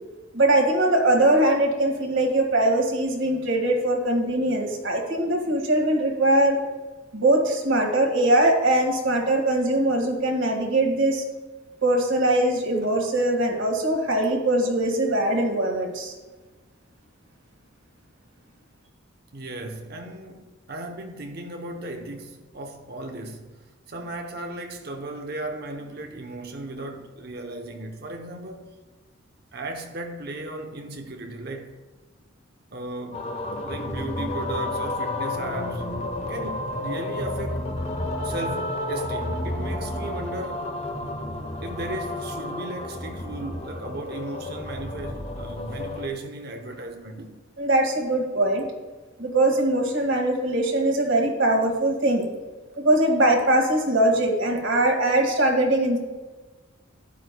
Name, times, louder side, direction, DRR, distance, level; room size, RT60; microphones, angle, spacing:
voice 1, 0.3-6.6 7.1-11.2 11.8-16.1 47.6-48.6 49.2-52.3 52.8-56.0, right 1 dB, 65° right, 1.9 m, -21 dB
voice 2, 19.3-28.7 29.5-31.8 32.7-35.9 36.3-37.8 38.2-40.7 41.6-47.4, right 2 dB, 50° right, 0.8 m, -36 dB
sound 1, 33.1-46.1, left 1 dB, 30° left, 0.9 m, -31 dB
12.5 x 9.9 x 2.3 m
head